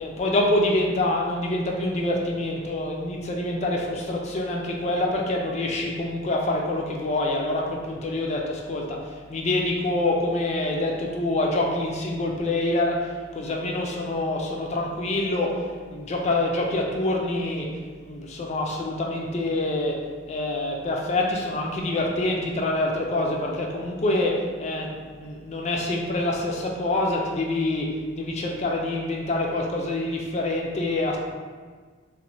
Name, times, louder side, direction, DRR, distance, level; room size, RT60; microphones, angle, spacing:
voice 1, 0.0-15.6 15.9-17.7 18.0-20.0 20.3-27.9 28.2-31.2, left 2 dB, 35° left, 0 dB, 0.3 m, -26 dB
2.6 x 2.1 x 3.0 m, 1.5 s
head